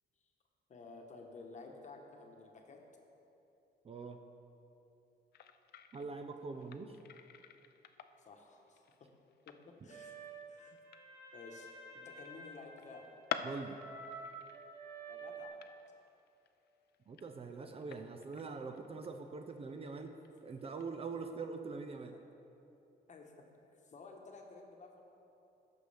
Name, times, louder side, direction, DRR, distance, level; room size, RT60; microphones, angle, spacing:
voice 1, 0.7-2.8 6.4-6.7 8.2-9.1 9.5-10.2 10.5-10.8 11.3-13.1 15.1-15.5 22.1-22.2 23.1-23.3 23.8-25.0, left 3 dB, 40° left, 2 dB, 1.1 m, -53 dB
voice 2, 3.8-4.2 5.9-7.0 13.4-13.8 17.1-20.1 20.4-22.1, right 4 dB, 35° right, 5 dB, 0.5 m, -43 dB
sound 1, 5.3-21.0, left 8 dB, 65° left, 0.4 m, -50 dB
sound 2, 9.9-15.5, right 3 dB, 85° right, 1.4 m, -50 dB
14.5 x 6.2 x 3.4 m, 2.9 s
cardioid pair, 130°, 18 cm